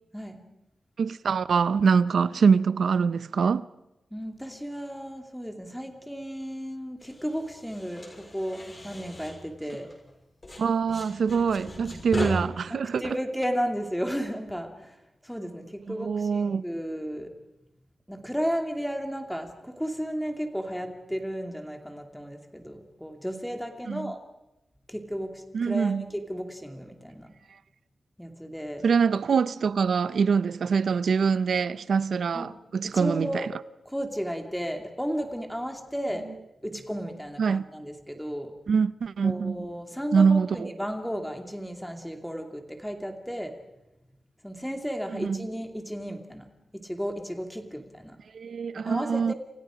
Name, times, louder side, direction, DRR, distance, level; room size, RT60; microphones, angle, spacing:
voice 1, 1.0-3.6 10.6-13.2 15.9-16.6 23.9-24.1 25.5-26.1 28.8-33.5 37.4-37.7 38.7-39.7 40.1-40.7 45.1-45.5 48.3-49.3, right 6 dB, 70° right, 0.8 m, -24 dB
voice 2, 4.1-9.9 12.7-14.9 15.2-17.3 18.1-24.2 24.9-27.3 28.2-28.8 32.3-32.5 32.8-33.5 33.9-36.3 36.6-38.5 39.2-43.5 44.4-46.4 46.7-48.2 48.8-49.3, equal, ahead, 2.6 m, -34 dB
sound 1, 7.0-10.1 10.4-12.3, left 2 dB, 25° left, 6.2 m, -39 dB
30.0 x 28.0 x 5.1 m
wide cardioid pair, 165°, 0 cm